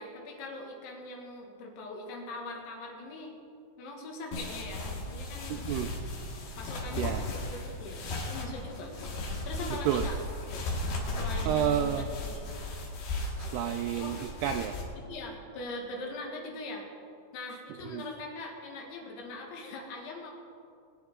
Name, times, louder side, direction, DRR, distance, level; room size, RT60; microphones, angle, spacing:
voice 1, 0.0-3.4 3.8-5.7 6.6-10.2 11.1-12.5 13.9-14.2 14.9-16.9 17.3-20.3, left 2 dB, 80° left, 0 dB, 4.2 m, -42 dB
sound 1, 4.3-14.8, left 2 dB, 65° left, 3.8 m, -36 dB
voice 2, 5.5-5.9 7.0-7.3 9.7-10.1 11.5-12.1 13.4-14.8 17.8-18.0, right 10 dB, 85° right, 6 dB, 2.3 m, -30 dB
22.0 x 9.9 x 3.7 m, 2.4 s
omnidirectional pair, 5.2 m